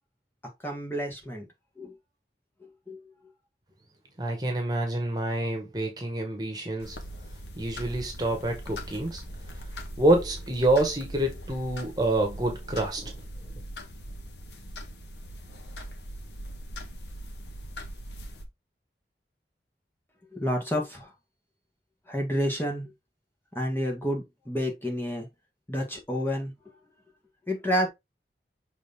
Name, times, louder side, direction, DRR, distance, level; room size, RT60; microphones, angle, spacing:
voice 1, 0.6-1.4 1.8-1.9 2.9-3.0 20.3-21.1 22.1-22.9 23.5-25.3 25.7-26.5 27.5-27.9, equal, 10° left, 1.6 m, -29 dB
voice 2, 4.2-7.0 7.6-9.2 10.0-13.1, right 1 dB, 20° right, 1.6 m, -27 dB
sound 1, 6.8-18.4, equal, 85° left, 1.3 m, -41 dB
6.4 x 4.1 x 3.6 m
head